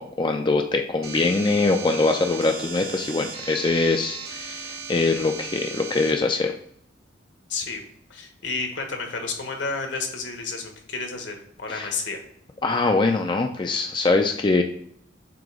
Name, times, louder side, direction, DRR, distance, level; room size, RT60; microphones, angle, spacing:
voice 1, 0.0-6.5 11.7-11.9 12.6-14.6, left 3 dB, 25° left, 4 dB, 0.4 m, -23 dB
sound 1, 1.0-6.1, right 5 dB, 55° right, 1.2 m, -37 dB
voice 2, 7.5-7.8 8.1-12.2, left 4 dB, 75° left, 4 dB, 1.4 m, -31 dB
7.6 x 2.9 x 4.8 m, 0.68 s
head